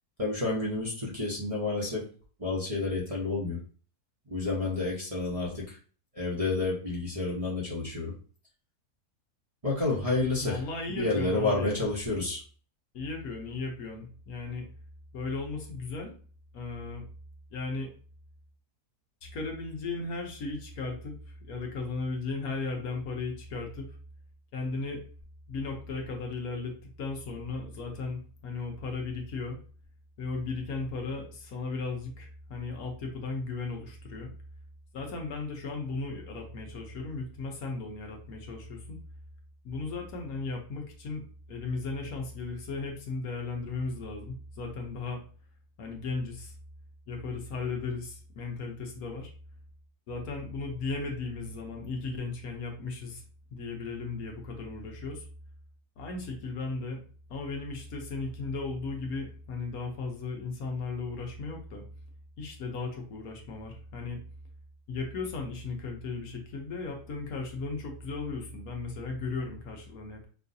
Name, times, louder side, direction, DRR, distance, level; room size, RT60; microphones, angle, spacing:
voice 1, 0.2-2.1 2.4-3.6 4.3-5.8 6.1-8.1 9.6-10.6 10.9-12.4, left 3 dB, 25° right, -7 dB, 0.9 m, -30 dB
voice 2, 10.4-11.9 12.9-14.7 15.1-16.1 16.5-17.0 17.5-17.9 19.2-24.0 24.5-25.0 25.5-29.6 30.2-34.3 34.9-39.0 39.6-45.2 45.8-46.5 47.1-49.3 50.1-53.2 53.5-55.3 56.0-57.0 57.3-61.8 62.4-64.2 64.9-70.2, left 3 dB, 70° left, 1 dB, 1.3 m, -36 dB
5.6 x 2.4 x 2.7 m, 0.41 s
omnidirectional pair, 1.6 m